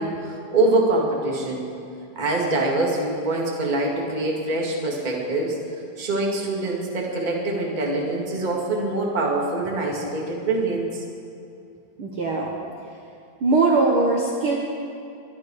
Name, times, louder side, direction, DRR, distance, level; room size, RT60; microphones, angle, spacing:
voice 1, 0.0-1.6 2.2-5.6 6.0-11.0, right 2 dB, 15° right, -2 dB, 1.8 m, -24 dB
voice 2, 12.0-12.5 13.4-14.6, right 3 dB, 55° right, -2 dB, 1.9 m, -20 dB
23.5 x 10.5 x 4.9 m, 2.5 s
omnidirectional pair, 3.4 m